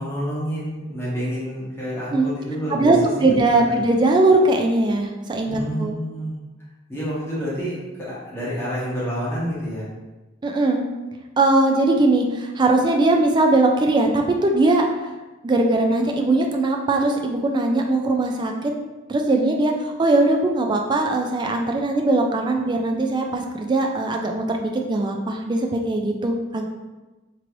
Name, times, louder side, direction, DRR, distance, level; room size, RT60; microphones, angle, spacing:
voice 1, 0.0-3.6 5.5-6.4 6.9-9.9, equal, 15° left, -9 dB, 1.1 m, -28 dB
voice 2, 2.7-5.9 10.4-10.8 11.4-14.9 15.4-18.7 19.1-26.6, right 2 dB, 25° right, 2 dB, 0.3 m, -20 dB
3.0 x 3.0 x 2.6 m, 1.1 s
head